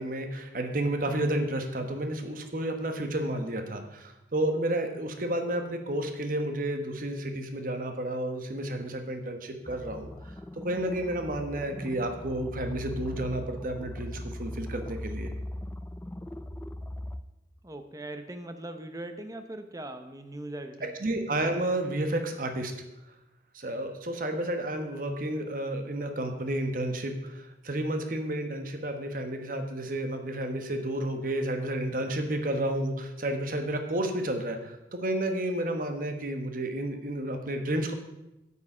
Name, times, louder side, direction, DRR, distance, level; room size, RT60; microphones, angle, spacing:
voice 1, 0.0-15.3 21.0-22.7 23.5-37.9, right 1 dB, 50° right, 6 dB, 1.1 m, -31 dB
sound 1, 9.6-17.2, left 1 dB, 10° left, 0.4 m, -39 dB
voice 2, 17.6-21.0, right 1 dB, 20° right, 8 dB, 0.8 m, -40 dB
8.8 x 8.6 x 5.0 m, 0.94 s
head